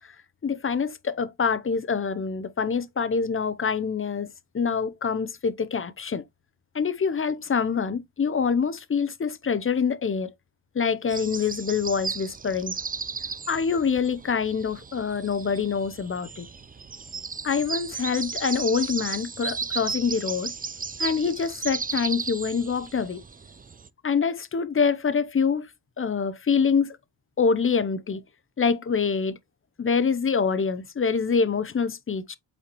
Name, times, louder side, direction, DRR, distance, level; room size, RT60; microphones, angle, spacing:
voice 1, 0.4-6.2 6.7-10.3 10.7-12.7 13.5-16.5 17.4-20.5 21.0-23.2 24.0-25.7 26.0-27.0 27.4-28.2 28.6-29.4 29.8-32.4, left 5 dB, 30° left, 0.6 m, -25 dB
sound 1, 11.1-23.9, right 5 dB, 20° right, 0.4 m, -35 dB
8.3 x 4.3 x 2.9 m
wide cardioid pair, 140°, 44 cm